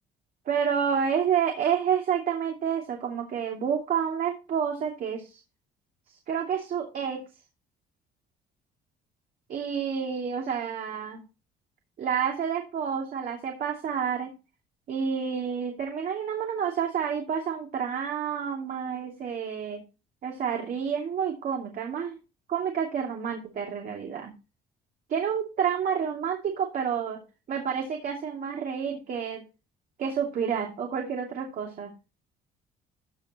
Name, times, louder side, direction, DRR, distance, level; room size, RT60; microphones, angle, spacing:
voice 1, 0.5-5.4 6.3-7.2 9.5-11.2 12.0-14.3 14.9-19.8 20.2-22.2 22.5-24.3 25.1-27.2 27.5-29.4 30.0-31.9, right 7 dB, 55° right, 1 dB, 2.7 m, -29 dB
14.5 x 6.5 x 3.0 m, 0.29 s
cardioid pair, 110°, 17 cm